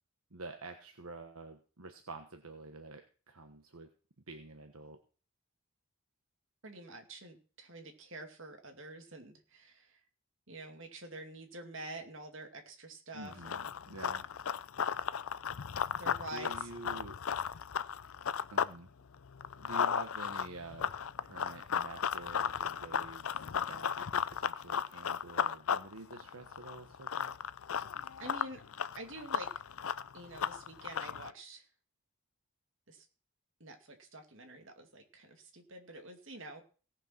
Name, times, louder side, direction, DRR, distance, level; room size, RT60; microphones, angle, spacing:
voice 1, 0.3-3.9 4.3-5.0 13.1-13.6 13.9-14.3 16.3-17.2 18.5-18.9 19.6-21.0 21.2-27.4, right 2 dB, 80° right, 5 dB, 1.2 m, -48 dB
voice 2, 6.6-10.0 10.5-13.7 16.0-16.7 28.2-28.6 28.9-29.5 30.1-31.6 32.9-33.1 33.6-36.6, right 2 dB, 60° right, 5 dB, 2.5 m, -47 dB
Run, 13.3-18.8 19.1-31.3, left 7 dB, 75° left, 0.5 m, -35 dB
17.5 x 6.8 x 5.9 m, 0.38 s
head